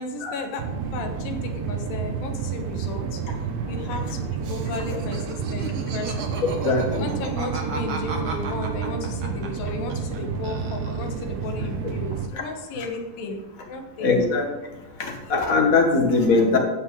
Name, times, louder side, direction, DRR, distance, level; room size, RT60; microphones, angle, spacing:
voice 1, 0.0-3.2 3.7-6.2 7.0-14.2 16.1-16.4, left 3 dB, 85° left, 4 dB, 3.0 m, -34 dB
sound 1, 0.6-12.3, right 6 dB, 75° right, 1.6 m, -30 dB
Laughter, 4.4-10.2 10.4-11.2, right 4 dB, 55° right, 1.5 m, -36 dB
voice 2, 6.6-7.1 14.0-14.5 15.0-16.6, left 3 dB, 45° left, 1 dB, 1.1 m, -20 dB
16.5 x 6.2 x 3.9 m, 1.1 s
omnidirectional pair, 4.0 m